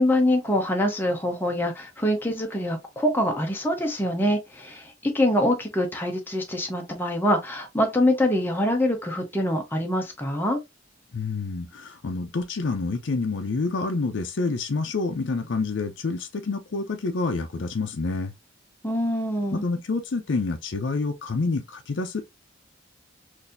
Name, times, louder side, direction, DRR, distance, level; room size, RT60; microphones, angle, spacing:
voice 1, 0.0-10.6 18.8-19.6, left 1 dB, 10° left, 0.6 m, -24 dB
voice 2, 11.1-18.3 19.5-22.2, left 3 dB, 65° left, 0.5 m, -28 dB
3.9 x 2.6 x 2.6 m
head